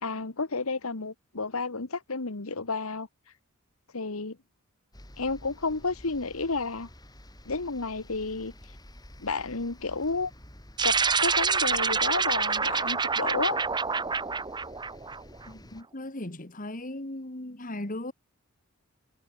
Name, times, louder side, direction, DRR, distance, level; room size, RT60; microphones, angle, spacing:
voice 1, 0.0-3.1 3.9-4.4 5.2-6.9 7.4-8.5 9.2-10.3 10.8-13.6, left 3 dB, 80° left, 1.5 m, -31 dB
sound 1, 4.9-15.8, equal, 20° left, 7.3 m, -51 dB
sound 2, 10.8-15.5, right 5 dB, 20° right, 1.0 m, -27 dB
voice 2, 15.5-18.1, left 1 dB, 40° left, 2.3 m, -37 dB
head